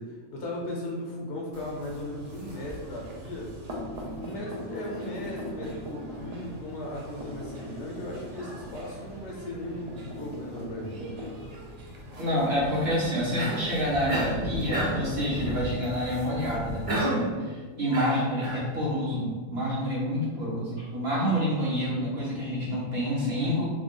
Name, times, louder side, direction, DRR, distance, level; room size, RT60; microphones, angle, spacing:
voice 1, 0.0-3.6 4.2-11.1 20.4-20.9, left 1 dB, 60° left, -2 dB, 0.8 m, -37 dB
sound 1, 1.5-17.0, right 1 dB, 80° right, 0.3 m, -39 dB
voice 2, 12.2-23.6, equal, 50° right, -6 dB, 1.0 m, -28 dB
Cough, 13.4-13.7 14.1-14.4 14.7-15.1 16.9-17.3 17.9-18.7, right 1 dB, 30° right, 0.7 m, -29 dB
3.1 x 2.2 x 3.7 m, 1.5 s
omnidirectional pair, 1.4 m